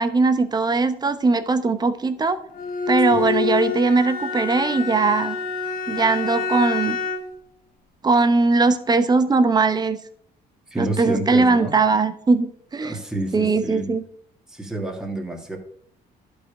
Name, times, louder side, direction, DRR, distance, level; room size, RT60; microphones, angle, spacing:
voice 1, 0.0-2.4 2.9-5.4 5.9-7.0 8.0-10.0 10.8-12.9 13.3-14.0, right 3 dB, 25° right, 10 dB, 1.0 m, -20 dB
Bowed string instrument, 2.5-7.4, left 5 dB, 55° left, 1.7 m, -27 dB
voice 2, 10.7-11.7 12.8-13.9 14.5-15.6, right 1 dB, 5° right, 1 dB, 2.0 m, -29 dB
11.5 x 5.1 x 5.0 m, 0.67 s
cardioid pair, 110°, 17 cm